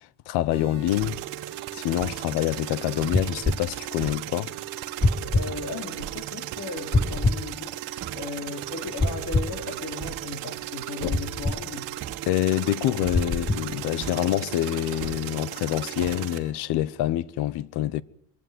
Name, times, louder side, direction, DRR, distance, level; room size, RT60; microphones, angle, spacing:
voice 1, 0.3-1.2 1.7-4.5 11.0-11.2 12.3-18.0, left 13 dB, 65° left, 1.0 m, -26 dB
sound 1, 0.5-16.5, right 10 dB, 50° right, 2.2 m, -40 dB
sound 2, 0.9-16.4, right 17 dB, 85° right, 1.6 m, -38 dB
sound 3, 3.1-3.6 5.0-5.5 6.9-7.4 9.0-9.5 11.1-11.6 13.1-13.7, left 2 dB, 10° left, 1.2 m, -23 dB
voice 2, 5.2-11.9, left 3 dB, 40° left, 3.6 m, -36 dB
23.5 x 15.0 x 9.5 m
cardioid pair, 125°, 43 cm